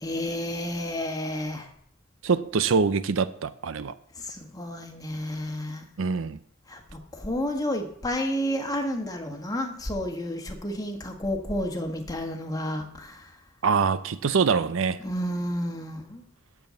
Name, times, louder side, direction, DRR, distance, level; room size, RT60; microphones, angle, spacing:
voice 1, 0.0-1.7 4.2-5.8 6.7-13.4 15.0-16.2, equal, 15° left, 1.5 m, -31 dB
voice 2, 2.2-3.9 6.0-6.4 13.6-15.0, right 5 dB, 65° right, 0.5 m, -24 dB
7.9 x 7.1 x 8.0 m
head